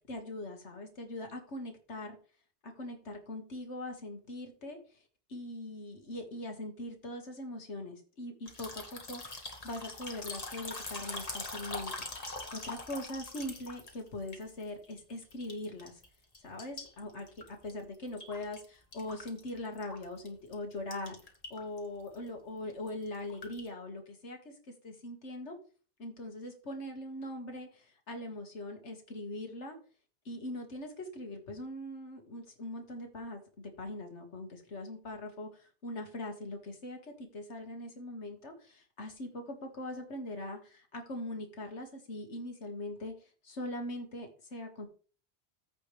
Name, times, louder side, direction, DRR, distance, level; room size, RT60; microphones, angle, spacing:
voice 1, 0.1-2.2 2.6-5.0 5.3-12.1 12.5-16.0 16.4-24.5 24.8-25.6 26.0-29.8 30.3-43.1 43.4-44.9, left 1 dB, 80° left, 3 dB, 2.1 m, -41 dB
sound 1, 8.5-15.0 15.3-16.1 16.3-18.7 18.9-20.3 20.5-20.6 20.9-21.8 22.1-22.3 22.7-23.7, left 2 dB, 35° left, 1.7 m, -43 dB
15.0 x 5.2 x 3.3 m, 0.39 s
omnidirectional pair, 1.2 m